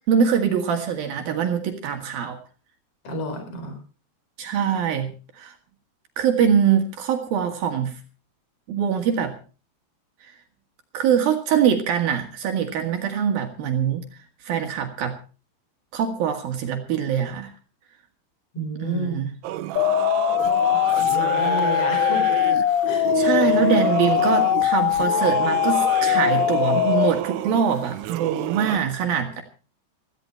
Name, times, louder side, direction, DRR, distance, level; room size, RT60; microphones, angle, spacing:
voice 1, 0.1-2.4 4.4-5.5 6.2-8.0 8.7-9.3 10.2-10.3 10.9-14.0 14.4-15.2 15.9-17.5 18.8-19.3 23.1-29.4, right 8 dB, 70° right, 5 dB, 3.3 m, -23 dB
voice 2, 3.0-3.8 18.5-19.2 21.0-22.3 22.9-23.1, right 1 dB, 35° left, 5 dB, 5.3 m, -30 dB
Singing / Musical instrument, 19.4-28.8, right 14 dB, 85° right, 2.9 m, -30 dB
sound 1, 19.8-27.1, left 11 dB, 75° left, 2.0 m, -21 dB
17.0 x 14.5 x 4.4 m, 0.37 s
omnidirectional pair, 4.6 m